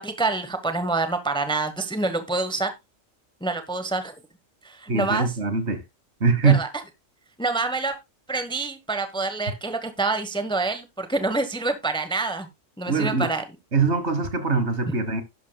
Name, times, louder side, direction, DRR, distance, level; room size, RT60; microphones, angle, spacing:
voice 1, 0.0-2.7 3.4-4.1 4.6-5.3 6.4-6.7 7.4-8.0 8.3-12.5 12.8-13.4 14.9-15.0, right 3 dB, 5° left, 1.0 m, -26 dB
voice 2, 4.9-5.8 6.2-6.6 12.9-13.3 13.7-15.2, right 4 dB, 60° right, 1.8 m, -22 dB
11.5 x 10.5 x 2.3 m
omnidirectional pair, 1.3 m